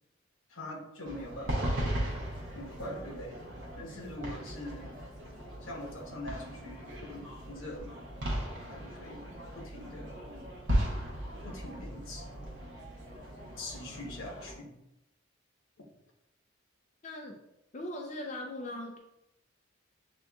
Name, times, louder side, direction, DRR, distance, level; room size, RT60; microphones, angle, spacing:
voice 1, 0.5-2.3 2.5-4.9 5.6-8.1 8.5-10.2 11.4-12.4 13.6-14.8, left 1 dB, 80° left, 0 dB, 1.0 m, -43 dB
sound 1, 1.0-14.5, equal, 60° right, 0.8 m, -37 dB
voice 2, 17.0-17.4 17.7-19.0, left 1 dB, 35° left, 0 dB, 0.4 m, -39 dB
7.4 x 2.6 x 2.3 m, 0.88 s
head